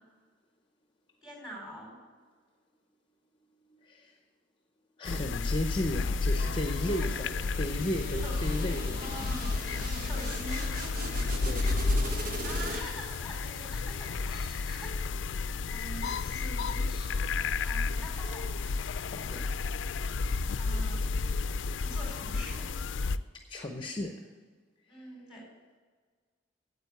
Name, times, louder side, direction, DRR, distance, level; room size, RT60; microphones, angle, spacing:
voice 1, 1.2-2.0 7.0-7.2 8.2-8.4 9.0-9.4 9.9-10.7 12.4-14.9 15.7-17.2 17.6-18.8 20.5-21.2 21.8-22.7 24.9-25.5, equal, 5° right, -2 dB, 4.4 m, -44 dB
voice 2, 3.8-4.2 5.0-9.4 11.4-12.4 14.3-14.6 15.3-15.7 19.1-20.0 23.1-24.3 24.9-25.1, left 1 dB, 25° left, 4 dB, 0.8 m, -36 dB
sound 1, 5.1-23.2, left 4 dB, 75° left, 0.4 m, -32 dB
sound 2, 6.4-13.2, right 2 dB, 50° right, 1.5 m, -40 dB
9.5 x 8.3 x 8.2 m, 1.5 s
head